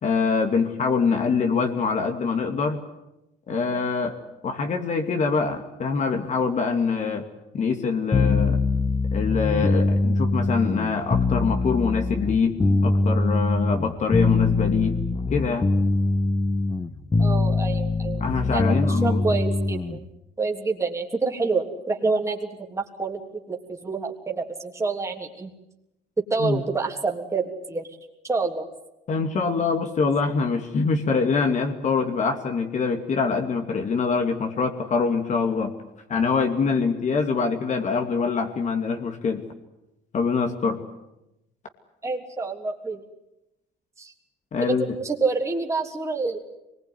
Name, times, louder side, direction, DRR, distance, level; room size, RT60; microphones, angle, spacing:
voice 1, 0.0-2.8 3.5-4.2 4.4-7.2 7.5-8.6 9.1-15.0 15.3-15.7 18.2-19.3 26.4-26.6 29.1-35.7 36.1-39.4 40.1-40.8 44.5-44.9, left 5 dB, 45° left, 4 dB, 2.6 m, -24 dB
sound 1, 8.1-20.0, left 3 dB, 20° left, 1.4 m, -23 dB
voice 2, 17.2-18.2 18.5-20.1 20.4-23.2 23.5-25.5 26.3-27.9 28.2-28.7 42.0-43.0 44.0-44.1 44.6-46.4, right 4 dB, 15° right, 1 dB, 3.3 m, -27 dB
25.0 x 20.5 x 9.7 m, 0.92 s
cardioid pair, 110°, 17 cm